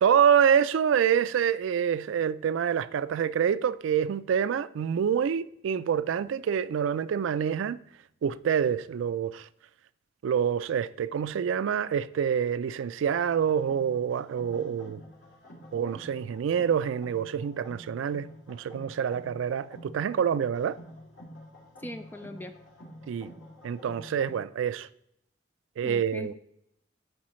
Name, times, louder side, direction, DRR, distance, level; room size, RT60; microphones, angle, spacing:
voice 1, 0.0-7.8 8.2-9.5 10.2-15.0 15.7-20.8 23.1-23.3 23.6-24.9 25.8-26.3, right 8 dB, 85° right, 0.3 m, -26 dB
sound 1, 13.3-24.4, equal, 85° left, 2.9 m, -49 dB
voice 2, 21.8-22.5 25.8-26.3, left 1 dB, 10° left, 0.4 m, -39 dB
11.5 x 4.7 x 3.1 m
head